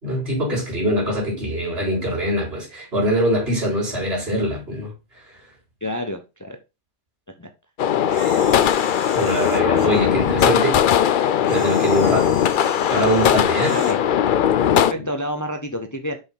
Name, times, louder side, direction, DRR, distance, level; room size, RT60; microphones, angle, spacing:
voice 1, 0.0-4.9 9.1-10.8 11.2-12.4 12.9-13.8, equal, 60° right, 4.3 m, -23 dB
voice 2, 5.8-6.6 7.4-7.5 8.4-8.7 9.9-10.2 13.6-14.0 14.7-16.2, left 1 dB, 20° left, 0.8 m, -29 dB
sound 1, 7.8-14.9, left 9 dB, 55° left, 0.6 m, -19 dB
Camera, 8.1-10.0 11.4-14.0, right 2 dB, 25° right, 1.8 m, -38 dB
6.7 x 5.4 x 3.9 m
omnidirectional pair, 1.2 m